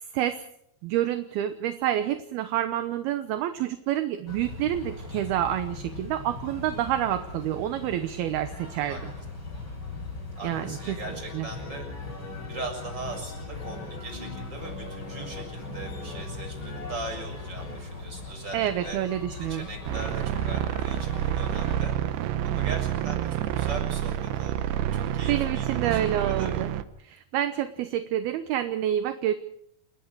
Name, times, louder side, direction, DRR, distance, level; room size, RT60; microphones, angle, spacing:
voice 1, 0.8-9.1 10.4-11.0 11.3-11.5 18.5-19.7 25.3-26.7 27.0-29.3, right 12 dB, 70° right, 10 dB, 2.7 m, -28 dB
sound 1, 4.3-21.8, left 3 dB, 25° left, 7.9 m, -39 dB
voice 2, 8.9-9.2 10.4-11.9 12.4-19.0 19.4-26.6, right 2 dB, 25° right, 4 dB, 7.2 m, -40 dB
sound 2, 19.9-26.8, right 11 dB, 90° right, 3.4 m, -28 dB
29.0 x 20.5 x 4.8 m, 0.70 s
omnidirectional pair, 5.0 m